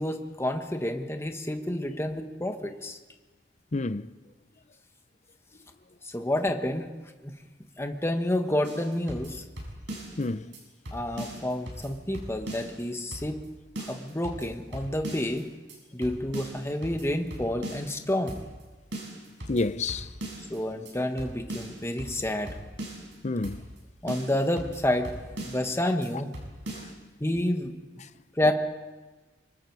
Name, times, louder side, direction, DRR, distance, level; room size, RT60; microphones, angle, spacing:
voice 1, 0.0-3.0 6.0-6.9 7.2-7.3 7.8-9.4 10.9-13.4 13.8-15.5 15.9-18.4 20.5-22.6 24.0-26.3 27.2-27.7 28.3-28.5, left 1 dB, 15° left, 1.5 m, -29 dB
voice 2, 3.7-4.1 10.2-10.5 19.5-20.1 23.2-23.6 26.7-26.9 28.0-28.1, left 2 dB, 40° left, 0.7 m, -29 dB
sound 1, 8.6-10.2 10.5-10.6 10.9-12.8 13.1-13.5 13.8-15.4 15.7-18.0 18.3-18.6 18.9-20.6 20.9-21.0 21.2-23.1 23.4-23.8 24.1-25.7 26.0-26.1 26.3-26.9, right 1 dB, 75° right, 6.9 m, -40 dB
25.5 x 23.0 x 4.8 m
head